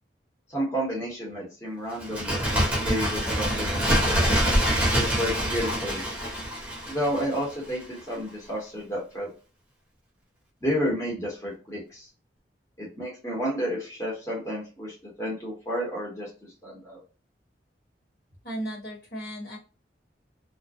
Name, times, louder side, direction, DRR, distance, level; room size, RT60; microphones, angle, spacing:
voice 1, 0.5-4.4 5.0-6.0 6.9-9.3 10.6-12.1 12.8-17.0, equal, 15° left, -4 dB, 0.9 m, -31 dB
Bird, 2.0-7.5 7.8-7.9, equal, 5° right, 0.6 m, -25 dB
voice 2, 18.4-19.6, right 1 dB, 60° left, -3 dB, 1.1 m, -35 dB
2.3 x 2.1 x 2.5 m, 0.33 s
head